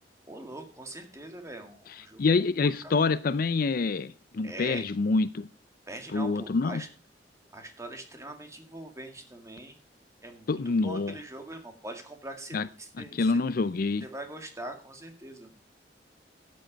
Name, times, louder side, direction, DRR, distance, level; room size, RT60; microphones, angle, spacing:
voice 1, 0.3-2.2 2.8-3.0 4.4-4.8 5.9-6.9 7.5-9.8 10.2-13.3 14.0-15.6, right 1 dB, 15° right, 2.0 m, -42 dB
voice 2, 1.9-5.5 6.1-6.8 10.5-11.2 12.5-12.7 13.0-14.0, left 4 dB, 55° left, 0.5 m, -27 dB
12.5 x 7.7 x 5.1 m
head